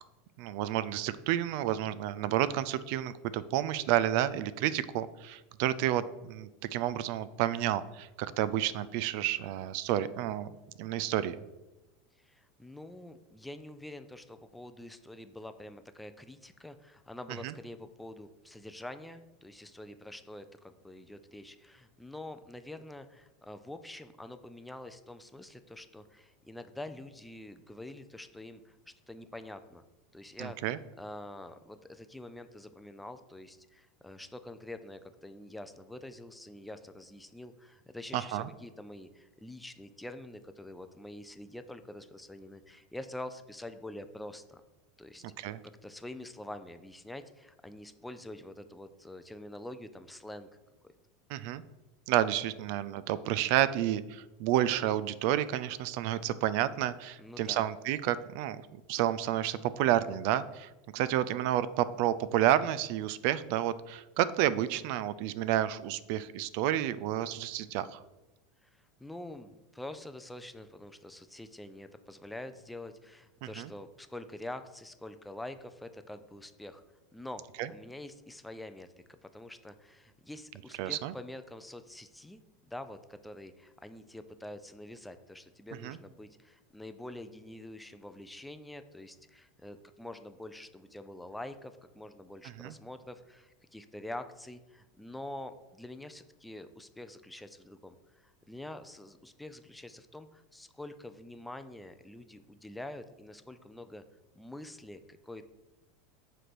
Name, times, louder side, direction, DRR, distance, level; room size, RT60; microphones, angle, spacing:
voice 1, 0.4-10.5 10.8-11.4 17.4-17.5 30.4-30.8 38.1-38.5 45.4-45.6 51.3-51.6 52.1-58.6 58.9-68.0 73.4-73.7 77.6-77.7 80.8-81.1 85.8-86.0 92.6-92.7, right 12 dB, 60° right, 16 dB, 0.3 m, -30 dB
voice 2, 12.2-28.8 29.1-29.8 30.1-44.6 45.0-45.2 45.6-50.5 57.2-57.7 68.6-76.8 77.1-77.4 77.7-82.4 82.7-104.0 104.3-105.5, left 1 dB, 5° left, 10 dB, 0.4 m, -46 dB
7.6 x 3.3 x 6.0 m, 1.0 s
supercardioid pair, 135°, 0 cm